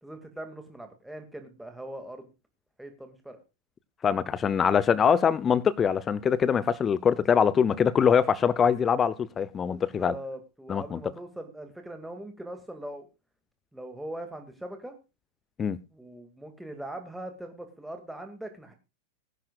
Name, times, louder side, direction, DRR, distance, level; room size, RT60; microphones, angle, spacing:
voice 1, 0.0-2.3 2.8-3.4 9.7-13.1 13.7-15.0 15.9-18.7, right 1 dB, 5° right, 2.2 m, -41 dB
voice 2, 4.0-10.1 10.7-11.0 15.6-15.8, left 7 dB, 20° left, 0.7 m, -23 dB
20.0 x 11.5 x 2.4 m
figure-of-eight pair, 90°, 0 cm